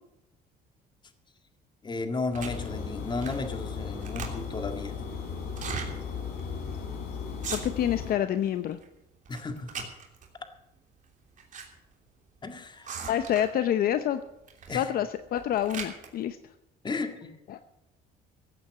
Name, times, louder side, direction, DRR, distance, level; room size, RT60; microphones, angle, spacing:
voice 1, 1.8-4.9 9.3-9.8 12.4-12.9 14.7-14.9 16.8-17.3, left 3 dB, 25° left, 6 dB, 2.0 m, -34 dB
sound 1, 2.3-2.7 3.2-3.5 3.8-4.6 5.5-5.9 6.4-6.5 6.7-7.0 7.3-8.0 8.4-8.9 9.3-10.3 11.1-11.7 11.9-12.0 12.8-13.6 14.5-14.8 15.2-16.1, right 6 dB, 50° right, 3.1 m, -39 dB
sound 2, 2.4-8.1, left 6 dB, 75° left, 4.5 m, -36 dB
voice 2, 7.5-8.8 13.1-14.2 14.7-16.4 17.5-17.6, left 10 dB, 60° left, 10 dB, 0.8 m, -27 dB
15.5 x 8.7 x 7.7 m, 0.90 s
cardioid pair, 110°, 17 cm